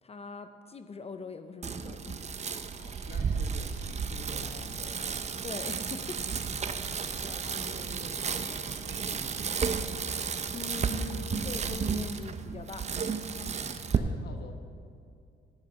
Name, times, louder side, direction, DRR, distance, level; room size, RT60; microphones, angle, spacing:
voice 1, 0.0-2.3 5.4-6.2 10.5-13.0, left 4 dB, 30° left, 9 dB, 0.5 m, -42 dB
Bicycle, 1.6-14.0, right 6 dB, 35° right, 0.6 m, -33 dB
voice 2, 2.7-5.0 6.6-6.9 7.2-9.8 13.8-14.5, left 3 dB, 55° left, 5 dB, 1.3 m, -49 dB
Bird vocalization bird call bird song, 2.8-9.4, right 4 dB, 80° right, 2.5 m, -56 dB
13.5 x 6.3 x 5.7 m, 2.5 s
cardioid pair, 90°, 20 cm